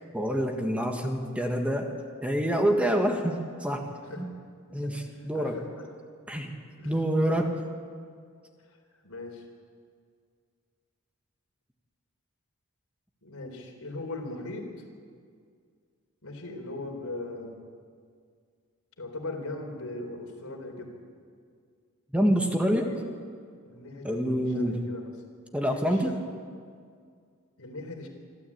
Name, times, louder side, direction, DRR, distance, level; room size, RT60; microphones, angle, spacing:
voice 1, 0.1-1.9 2.2-3.8 4.2-4.3 4.7-5.6 6.3-6.5 6.8-7.6 22.1-22.9 24.0-24.8 25.5-26.1, equal, 5° right, 3 dB, 1.6 m, -26 dB
voice 2, 4.0-4.4 4.8-4.9 5.3-5.9 6.8-7.0 9.0-9.4 13.2-14.7 16.2-17.5 19.0-20.9 22.6-23.0 23.7-25.1 25.6-26.2 27.6-28.1, left 2 dB, 80° left, 2 dB, 3.9 m, -39 dB
26.0 x 13.0 x 8.6 m, 2.1 s
head